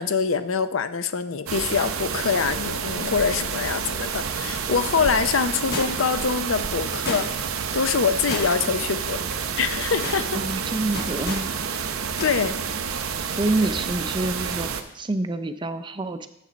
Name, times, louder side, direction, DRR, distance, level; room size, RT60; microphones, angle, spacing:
voice 1, 0.0-9.2 9.6-10.4 12.2-12.6, left 5 dB, 65° left, 12 dB, 0.5 m, -24 dB
sound 1, 1.5-14.8, right 6 dB, 80° right, 0.7 m, -29 dB
sound 2, 5.7-6.2 7.1-7.6 8.3-8.8 9.1-9.3 9.8-10.2 10.9-11.5 12.2-12.4 12.7-12.8, left 2 dB, 50° left, 1.4 m, -32 dB
voice 2, 10.3-11.5 13.4-16.3, right 2 dB, 25° right, 10 dB, 0.5 m, -27 dB
7.4 x 6.8 x 5.1 m, 0.83 s
head